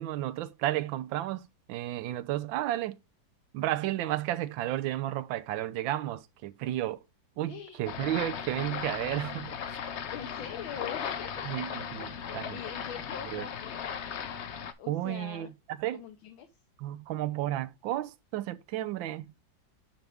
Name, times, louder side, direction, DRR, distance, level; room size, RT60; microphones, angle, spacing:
voice 1, 0.0-3.0 3.5-7.0 7.4-9.8 11.4-12.6 13.3-13.4 14.9-15.5 15.8-16.0 16.8-19.3, right 14 dB, 85° right, 1.4 m, -32 dB
voice 2, 7.5-7.8 10.1-11.5 12.5-14.0 14.8-15.5 15.9-16.5, left 9 dB, 85° left, 1.7 m, -43 dB
sound 1, 7.9-14.7, left 7 dB, 70° left, 0.6 m, -37 dB
7.6 x 5.8 x 3.5 m
omnidirectional pair, 2.1 m